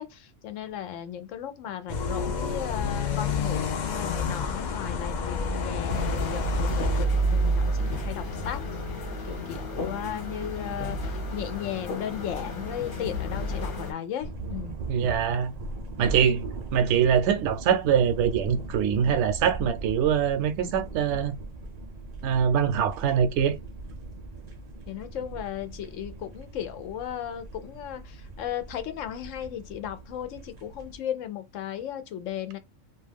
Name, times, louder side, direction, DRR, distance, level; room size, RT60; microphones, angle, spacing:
voice 1, 0.0-8.6 9.2-14.8 24.9-32.6, left 10 dB, 85° left, 1.0 m, -36 dB
sound 1, 1.9-7.1, left 6 dB, 60° left, 0.4 m, -29 dB
sound 2, 5.9-13.9, right 1 dB, 45° left, 1.0 m, -30 dB
sound 3, 14.2-31.0, right 2 dB, 45° right, 0.5 m, -39 dB
voice 2, 14.9-15.5 16.0-16.4 16.7-21.4 22.2-23.6, right 8 dB, 70° right, 0.8 m, -23 dB
2.4 x 2.2 x 3.3 m
omnidirectional pair, 1.3 m